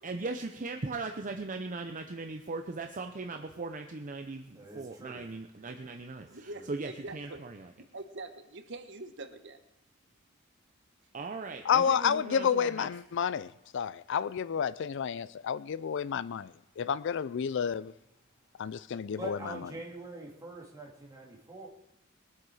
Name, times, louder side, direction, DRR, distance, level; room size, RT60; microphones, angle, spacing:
voice 1, 0.0-7.7 11.1-12.9, right 3 dB, 40° right, 0.7 m, -39 dB
voice 2, 4.5-5.2 6.5-6.7 19.1-21.7, right 1 dB, 20° right, 2.7 m, -43 dB
voice 3, 6.3-7.4 7.9-9.6, right 2 dB, 60° right, 1.2 m, -44 dB
voice 4, 11.6-17.9 18.6-19.6, left 7 dB, 60° left, 0.4 m, -30 dB
22.0 x 8.0 x 4.9 m
head